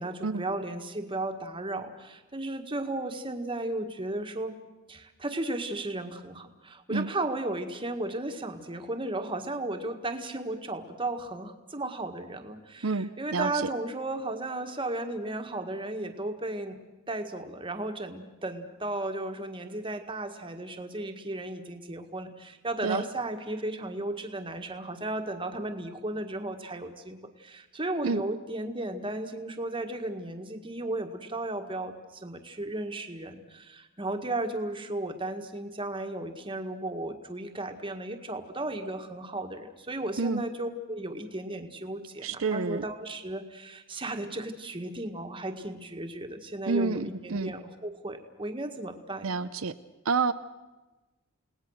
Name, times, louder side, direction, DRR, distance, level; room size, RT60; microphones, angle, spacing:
voice 1, 0.0-4.6 4.9-16.8 17.1-49.3, right 2 dB, 25° right, 6 dB, 1.7 m, -35 dB
voice 2, 12.8-13.5 22.8-23.0 28.0-28.2 40.2-40.4 42.2-42.8 46.7-47.5 49.2-49.7 50.0-50.3, right 4 dB, 75° right, 10 dB, 0.7 m, -28 dB
30.0 x 18.5 x 6.5 m, 1.1 s
head